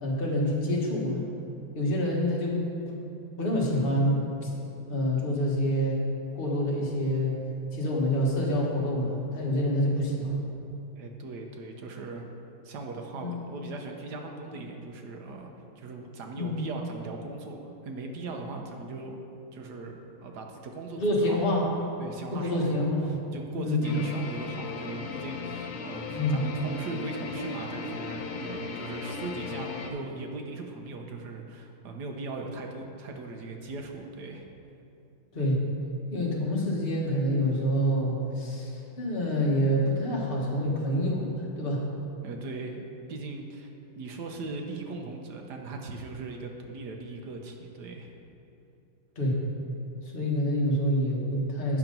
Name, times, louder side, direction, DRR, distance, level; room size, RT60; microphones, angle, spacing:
voice 1, 0.0-1.2 1.7-2.6 2.9-3.0 3.4-4.5 4.9-6.1 6.3-7.4 7.7-10.4 13.2-13.3 16.4-16.5 21.0-21.6 22.3-23.2 23.5-24.2 26.1-26.4 35.3-35.6 36.1-41.8 49.1-49.4 50.0-51.8, equal, 30° left, -4 dB, 1.3 m, -27 dB
voice 2, 11.0-12.3 12.6-19.1 19.5-19.9 20.2-21.4 22.0-22.9 23.3-34.5 42.2-43.7 44.0-48.1, right 3 dB, 65° right, 2 dB, 1.2 m, -39 dB
sound 1, 23.8-29.9, left 4 dB, 85° left, 1.5 m, -37 dB
8.7 x 5.9 x 5.2 m, 2.7 s
omnidirectional pair, 2.3 m